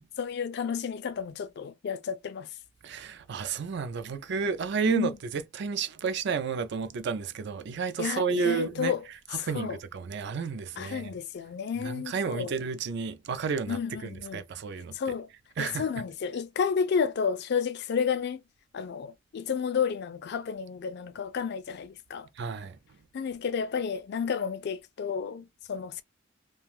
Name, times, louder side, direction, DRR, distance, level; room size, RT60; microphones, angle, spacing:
voice 1, 0.2-2.5 4.8-5.1 8.0-9.0 9.4-9.8 10.8-12.5 13.7-14.4 14.9-15.3 15.6-18.4 18.7-22.3 23.1-26.0, left 6 dB, 60° left, 0.4 m, -31 dB
voice 2, 2.8-9.0 9.3-11.2 11.8-15.1 15.6-15.8 22.4-23.0, right 5 dB, 60° right, 0.4 m, -32 dB
2.4 x 2.2 x 3.1 m
head